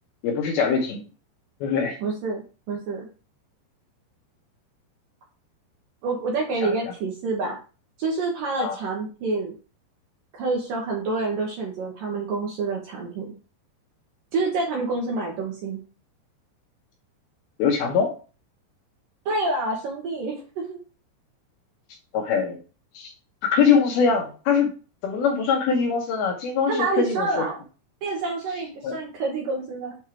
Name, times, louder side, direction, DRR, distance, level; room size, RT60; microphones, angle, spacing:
voice 1, 0.2-1.0 1.6-2.0 6.6-6.7 8.6-8.7 17.6-18.1 22.1-22.6 22.9-23.1 23.4-24.7 25.0-27.4 28.8-28.9, left 6 dB, 70° left, 2 dB, 2.5 m, -22 dB
voice 2, 2.0-3.1 6.0-7.6 8.0-9.5 10.3-13.3 14.3-15.8 19.3-20.8 26.7-27.6 28.0-30.0, right 3 dB, 70° right, -1 dB, 2.2 m, -27 dB
7.4 x 3.6 x 4.5 m, 0.36 s
omnidirectional pair, 5.2 m